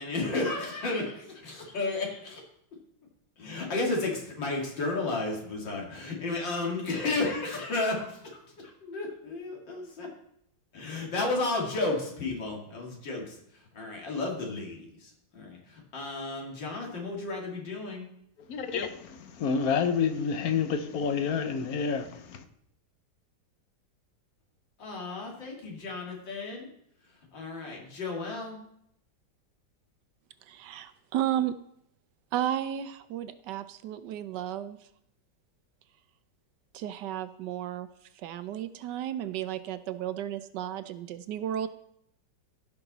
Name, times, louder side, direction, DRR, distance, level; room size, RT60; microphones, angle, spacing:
voice 1, 0.0-2.4 3.4-10.1 10.7-18.1 24.8-26.7 27.3-28.6, left 3 dB, 80° left, -1 dB, 2.9 m, -33 dB
voice 2, 18.5-22.4, left 6 dB, 60° left, 9 dB, 1.1 m, -29 dB
voice 3, 30.5-31.6 32.3-34.8 36.7-37.9 38.2-41.7, right 11 dB, 75° right, 13 dB, 1.1 m, -33 dB
15.5 x 5.8 x 4.0 m, 0.72 s
omnidirectional pair, 2.0 m